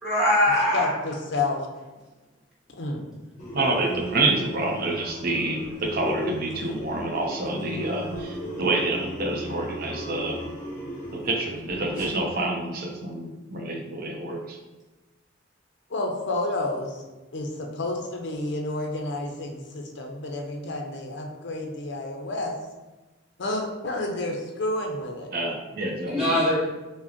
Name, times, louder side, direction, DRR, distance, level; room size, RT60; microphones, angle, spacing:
voice 1, 0.0-0.9 20.6-20.7 26.1-26.6, left 1 dB, 5° right, -8 dB, 1.1 m, -22 dB
voice 2, 0.7-1.7 2.8-3.0 15.9-17.0 17.3-22.5 23.4-25.3, left 2 dB, 60° left, 2 dB, 0.6 m, -30 dB
sound 1, 3.4-12.3, equal, 40° left, 1.1 m, -36 dB
voice 3, 3.5-10.4 11.2-14.6 25.3-26.4, right 2 dB, 50° right, 1 dB, 0.6 m, -28 dB
4.9 x 2.1 x 2.8 m, 1.1 s
head